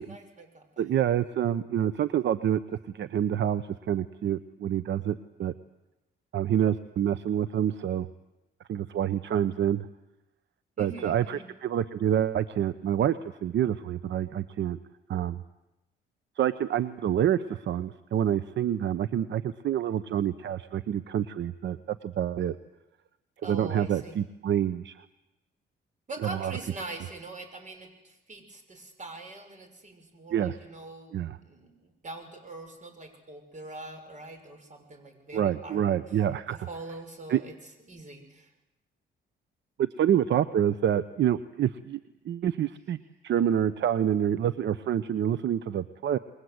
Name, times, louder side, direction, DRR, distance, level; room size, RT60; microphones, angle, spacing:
voice 1, 0.0-0.9 10.8-11.5 23.4-24.2 26.1-35.8 36.5-38.5, right 2 dB, 40° right, 7 dB, 6.3 m, -43 dB
voice 2, 0.8-2.6 2.9-5.5 6.3-8.1 8.7-9.9 10.8-14.8 15.1-15.4 16.4-22.6 23.4-25.0 26.2-26.5 30.3-30.6 31.1-31.4 35.3-36.7 37.3-37.4 39.8-42.0 42.2-43.0 43.2-46.2, right 10 dB, 65° right, 14 dB, 0.9 m, -27 dB
28.0 x 22.0 x 8.0 m, 0.95 s
cardioid pair, 90°, 20 cm